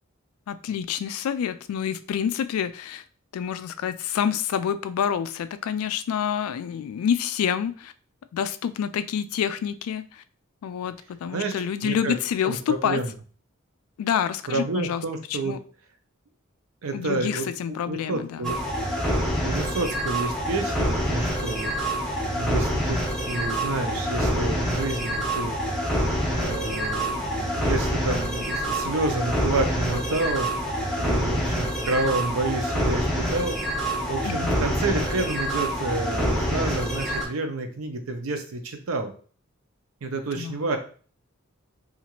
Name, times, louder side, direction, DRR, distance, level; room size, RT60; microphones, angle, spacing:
voice 1, 0.5-3.0 3.3-7.9 8.3-10.2 10.6-13.0 14.0-15.0 15.3-15.6 16.9-18.5 34.2-34.6 40.4-40.7, left 8 dB, 90° left, 15 dB, 0.3 m, -28 dB
voice 2, 11.8-12.1 12.4-13.1 14.5-15.5 16.8-17.5 17.9-18.6 19.4-25.6 25.9-39.1 40.0-40.8, right 3 dB, 80° right, 6 dB, 0.6 m, -29 dB
sound 1, 18.4-37.3, equal, ahead, 0.6 m, -26 dB
2.8 x 2.4 x 2.9 m, 0.41 s
head